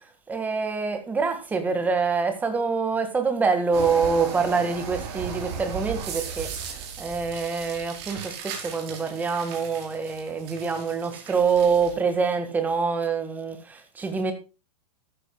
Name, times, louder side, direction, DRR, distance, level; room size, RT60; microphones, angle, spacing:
voice 1, 0.3-14.3, right 5 dB, 10° right, 1.9 m, -25 dB
sound 1, 3.7-11.9, right 6 dB, 40° right, 4.7 m, -36 dB
14.5 x 13.0 x 2.3 m
hypercardioid pair, 165°, 21 cm